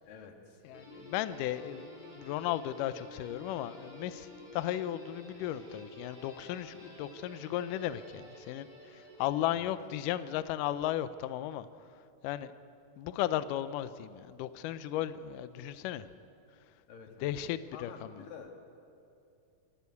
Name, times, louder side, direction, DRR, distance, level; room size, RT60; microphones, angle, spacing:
voice 1, 0.1-0.6 9.5-9.7 16.9-17.3 17.7-18.5, left 6 dB, 65° left, 3 dB, 3.3 m, -49 dB
voice 2, 0.6-11.7 12.2-12.5 13.0-16.1 17.2-17.9, left 12 dB, 90° left, 13 dB, 1.8 m, -35 dB
Guitar, 0.7-10.0, left 1 dB, 10° right, 4.7 m, -51 dB
27.5 x 11.5 x 8.3 m, 2.6 s
omnidirectional pair, 4.5 m